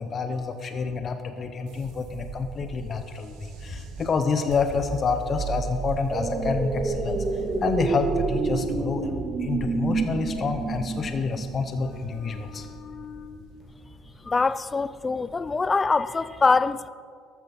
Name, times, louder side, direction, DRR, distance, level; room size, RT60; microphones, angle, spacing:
voice 1, 0.0-7.2 7.6-13.5, left 4 dB, 40° left, 0.9 m, -28 dB
sound 1, 1.7-15.9, right 5 dB, 65° right, 1.9 m, -38 dB
sound 2, 6.1-12.2 12.6-12.7, right 3 dB, 30° right, 1.5 m, -29 dB
voice 2, 14.3-16.9, left 4 dB, 25° left, 0.4 m, -23 dB
13.5 x 13.0 x 4.3 m
hypercardioid pair, 55°, 0 cm